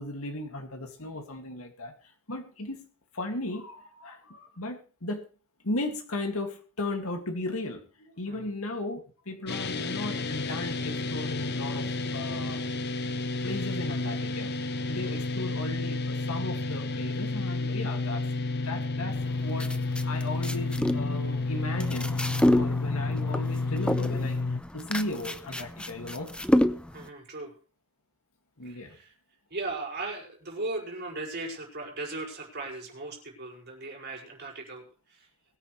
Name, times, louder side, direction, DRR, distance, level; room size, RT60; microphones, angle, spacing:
voice 1, 0.0-1.9 2.3-2.9 3.1-5.3 5.6-12.6 13.4-14.5 14.9-18.2 18.5-22.2 22.5-24.4 24.7-26.3 28.6-29.0, left 2 dB, 75° left, 4 dB, 2.3 m, -36 dB
sound 1, 9.5-24.6, left 3 dB, 50° left, 0.9 m, -31 dB
sound 2, 19.1-27.1, left 1 dB, 5° left, 0.7 m, -29 dB
voice 2, 26.9-27.5 28.6-29.1 29.5-35.3, right 2 dB, 50° right, -1 dB, 5.5 m, -38 dB
22.0 x 9.8 x 3.3 m, 0.38 s
head